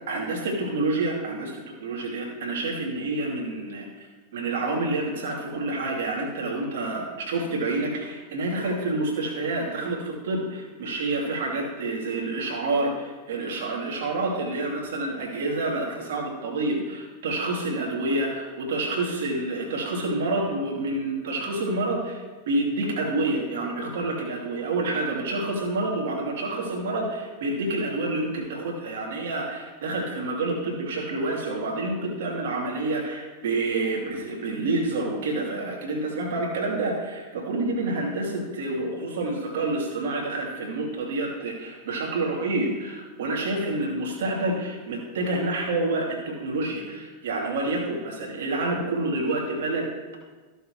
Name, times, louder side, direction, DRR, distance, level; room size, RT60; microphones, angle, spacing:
voice 1, 0.1-3.9 4.3-22.2 22.5-50.2, right 2 dB, 60° right, -1 dB, 2.5 m, -28 dB
14.5 x 6.8 x 3.2 m, 1.3 s
figure-of-eight pair, 90°, 0 cm